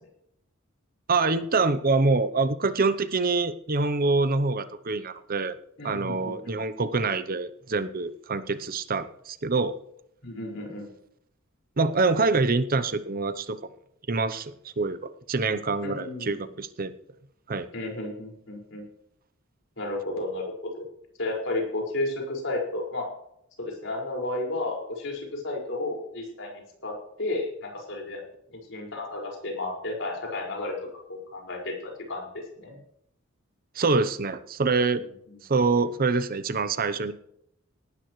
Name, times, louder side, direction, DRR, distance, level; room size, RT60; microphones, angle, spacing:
voice 1, 1.1-5.5 5.8-9.7 11.8-13.6 14.1-16.9 17.5-17.7 33.8-35.0 35.5-37.1, right 3 dB, 45° right, 13 dB, 0.8 m, -25 dB
voice 2, 5.8-6.5 10.2-10.9 15.8-16.4 17.7-18.8 19.8-20.9 21.2-23.1 23.6-28.2 28.5-30.8 31.1-32.8 34.9-35.4, left 2 dB, 65° left, 0 dB, 5.3 m, -33 dB
18.5 x 12.5 x 3.2 m, 0.74 s
head